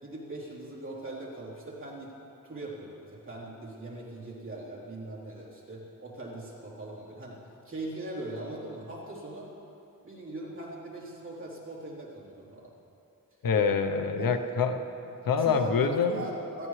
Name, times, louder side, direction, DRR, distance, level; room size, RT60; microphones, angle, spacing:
voice 1, 0.0-2.1 2.4-7.4 7.6-9.5 10.0-12.7 15.4-16.7, right 1 dB, 35° right, -6 dB, 3.4 m, -40 dB
voice 2, 13.4-14.8 15.2-16.2, left 5 dB, 85° left, 8 dB, 0.8 m, -25 dB
17.5 x 14.0 x 3.2 m, 2.7 s
wide cardioid pair, 85°, 34 cm